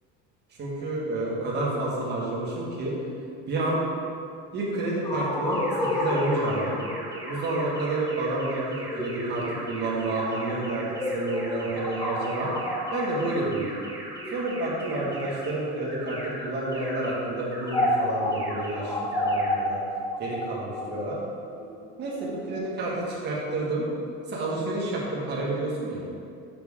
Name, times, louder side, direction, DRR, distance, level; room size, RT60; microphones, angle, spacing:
voice 1, 0.6-2.9 3.5-3.8 4.5-6.8 7.2-12.5 12.9-13.8 14.3-19.8 20.2-21.2 22.0-23.9 24.3-26.0, right 2 dB, 35° right, -5 dB, 1.7 m, -29 dB
sound 1, 5.0-14.9 15.6-22.6, left 1 dB, 10° left, 0.4 m, -31 dB
sound 2, 5.5-15.5 15.9-16.3 16.7-17.1 17.5-17.9 18.3-18.7 19.1-19.5, right 2 dB, 10° right, 1.1 m, -41 dB
6.8 x 6.0 x 3.6 m, 2.4 s
cardioid pair, 165°, 31 cm